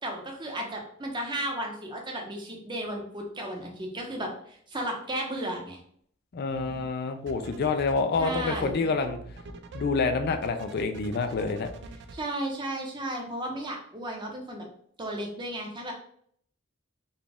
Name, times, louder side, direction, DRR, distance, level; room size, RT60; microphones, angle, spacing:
voice 1, 0.0-5.8 8.2-8.8 12.1-14.6 15.0-15.9, right 1 dB, 25° right, 1 dB, 0.8 m, -34 dB
voice 2, 6.3-9.2 9.7-11.7, left 4 dB, 50° left, 7 dB, 0.4 m, -27 dB
sound 1, 6.5-6.9 7.3-12.2, right 3 dB, 60° right, 0.4 m, -43 dB
4.0 x 2.3 x 3.5 m, 0.63 s
head